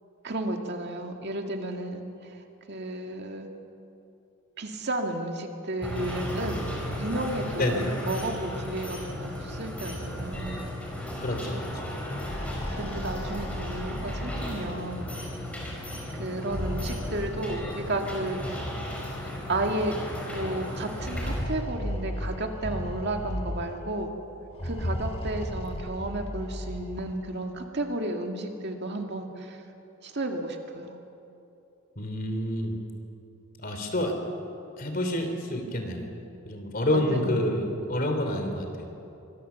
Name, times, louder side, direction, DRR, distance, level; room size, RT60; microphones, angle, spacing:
voice 1, 0.2-2.0 2.7-3.5 4.6-10.6 12.7-15.1 16.2-18.8 19.5-20.0 20.3-24.1 24.6-29.6 30.0-30.9 36.9-37.4, right 2 dB, 50° right, 3 dB, 2.1 m, -33 dB
sound 1, 5.8-21.4, left 1 dB, 5° left, 4.6 m, -35 dB
voice 2, 7.6-7.9 11.2-11.8 32.0-32.7 33.6-34.1 34.8-36.1 36.4-38.7, left 1 dB, 40° left, 5 dB, 3.2 m, -28 dB
sound 2, 12.2-14.9 16.3-18.0 19.0-19.1 19.4-19.5 20.8-23.9 24.5-27.1, left 1 dB, 25° left, 1.4 m, -35 dB
25.0 x 21.5 x 7.0 m, 2.9 s
head